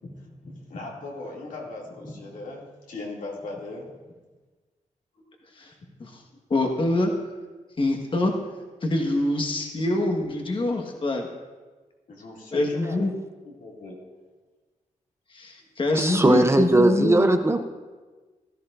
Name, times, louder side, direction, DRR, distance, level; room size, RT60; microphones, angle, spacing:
voice 1, 0.0-3.8 12.1-13.1 13.4-14.0, left 2 dB, 85° left, -3 dB, 2.6 m, -38 dB
voice 2, 6.5-7.1 7.8-8.3 8.8-11.3 12.5-13.1 15.3-17.4, left 2 dB, 40° left, 2 dB, 1.5 m, -25 dB
voice 3, 15.9-17.6, right 2 dB, 20° right, 7 dB, 0.6 m, -19 dB
16.5 x 13.0 x 2.6 m, 1.3 s
wide cardioid pair, 125°, 13 cm